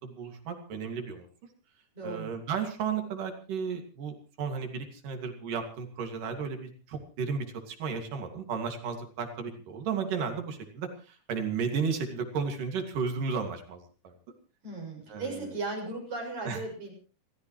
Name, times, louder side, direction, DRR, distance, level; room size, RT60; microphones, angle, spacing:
voice 1, 0.0-1.3 2.0-14.1 15.1-15.4 16.5-16.6, right 5 dB, 80° right, 5 dB, 3.9 m, -34 dB
voice 2, 1.9-2.3 14.6-16.9, right 3 dB, 60° right, 0 dB, 8.2 m, -36 dB
29.0 x 14.0 x 3.2 m, 0.36 s
omnidirectional pair, 3.7 m